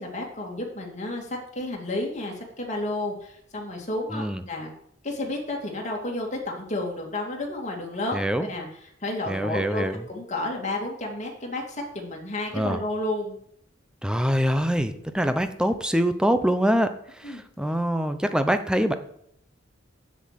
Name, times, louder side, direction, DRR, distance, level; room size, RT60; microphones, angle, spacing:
voice 1, 0.0-4.7 5.0-8.7 9.0-13.4 17.2-17.4, left 2 dB, 40° left, 0 dB, 2.5 m, -31 dB
voice 2, 4.1-4.4 8.1-8.5 9.3-10.0 12.5-12.8 14.0-18.9, equal, 5° right, 9 dB, 0.8 m, -24 dB
7.8 x 7.5 x 7.8 m, 0.70 s
head